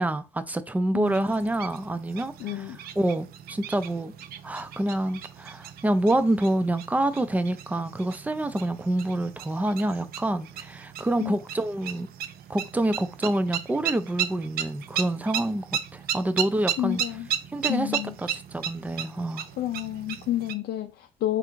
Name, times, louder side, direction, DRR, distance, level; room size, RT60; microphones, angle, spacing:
voice 1, 0.0-2.7 3.0-4.1 4.4-12.1 12.5-17.0 17.5-19.5, right 1 dB, 10° right, 0.4 m, -27 dB
sound 1, 1.0-20.5, right 9 dB, 65° right, 0.5 m, -36 dB
voice 2, 2.4-2.8 11.2-11.3 16.8-17.3 17.7-18.2 19.6-21.4, left 13 dB, 65° left, 0.5 m, -30 dB
3.4 x 2.5 x 4.5 m
cardioid pair, 110°, 17 cm